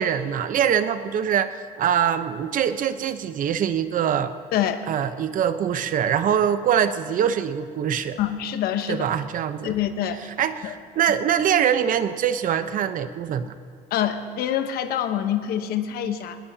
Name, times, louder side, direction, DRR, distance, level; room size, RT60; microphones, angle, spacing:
voice 1, 0.0-4.3 4.9-8.2 8.9-9.8 10.4-13.5, right 9 dB, 60° right, 10 dB, 0.9 m, -23 dB
voice 2, 4.5-4.8 8.2-9.1 9.6-10.3 10.6-10.7 13.9-16.4, left 10 dB, 80° left, 9 dB, 1.1 m, -26 dB
20.5 x 19.0 x 2.9 m, 2.4 s
cardioid pair, 95°, 16 cm